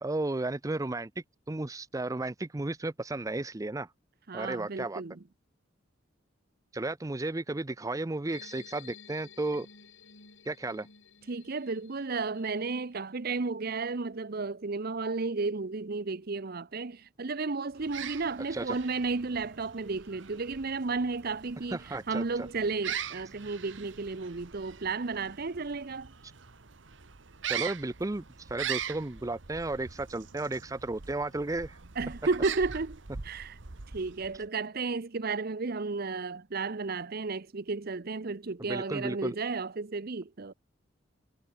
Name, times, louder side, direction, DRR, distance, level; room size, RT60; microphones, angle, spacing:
voice 1, 0.0-1.1 1.5-3.9 4.3-5.0 6.7-9.7 10.4-10.9 18.5-18.8 21.7-22.5 27.5-31.8 38.7-39.4, right 2 dB, 20° right, 0.5 m, -33 dB
voice 2, 4.3-5.2 11.3-21.8 22.1-26.1 32.0-33.0 33.2-33.5 33.9-40.5, right 4 dB, 55° right, 0.8 m, -33 dB
sound 1, 8.3-13.0, left 7 dB, 85° left, 6.8 m, -53 dB
sound 2, 17.7-34.5, right 8 dB, 75° right, 1.3 m, -42 dB
head